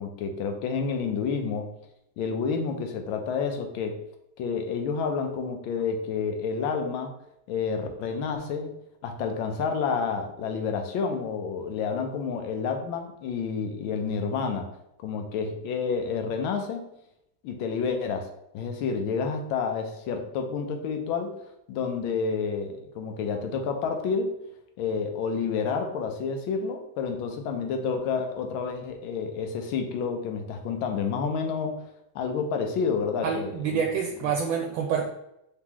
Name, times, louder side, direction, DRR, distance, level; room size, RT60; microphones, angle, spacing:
voice 1, 0.0-1.7 2.2-4.0 4.4-7.1 7.5-8.7 9.0-14.7 15.0-16.9 17.4-18.3 18.5-21.4 21.7-24.3 24.8-31.9 32.1-33.8, left 5 dB, 85° left, 5 dB, 1.4 m, -29 dB
voice 2, 33.2-35.0, right 6 dB, 80° right, 1 dB, 1.3 m, -27 dB
3.7 x 3.7 x 2.9 m, 0.80 s
omnidirectional pair, 2.2 m